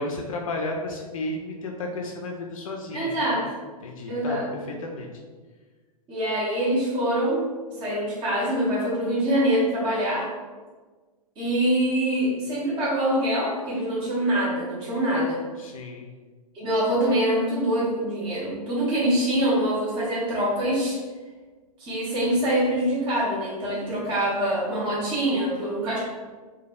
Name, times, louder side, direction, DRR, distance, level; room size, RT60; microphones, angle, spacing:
voice 1, 0.0-3.3 3.8-5.1 15.6-16.1, left 2 dB, 60° left, 1 dB, 0.4 m, -33 dB
voice 2, 2.9-3.4 4.1-4.5 6.1-7.4 7.7-10.3 11.4-15.4 16.5-21.0 21.8-26.0, right 1 dB, 25° right, -7 dB, 0.9 m, -24 dB
3.1 x 2.2 x 2.5 m, 1.4 s
figure-of-eight pair, 110°, 20 cm